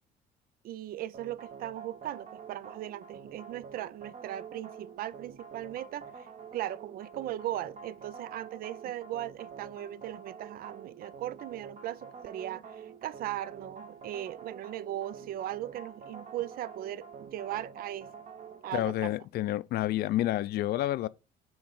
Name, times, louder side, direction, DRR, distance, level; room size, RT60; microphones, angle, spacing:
voice 1, 0.6-6.3 6.5-18.1 18.6-19.1, right 13 dB, 60° right, 0.4 m, -38 dB
sound 1, 1.1-19.0, right 6 dB, 45° right, 0.9 m, -47 dB
voice 2, 18.7-21.1, left 14 dB, 70° left, 0.5 m, -29 dB
6.1 x 3.2 x 5.4 m
cardioid pair, 110°, 17 cm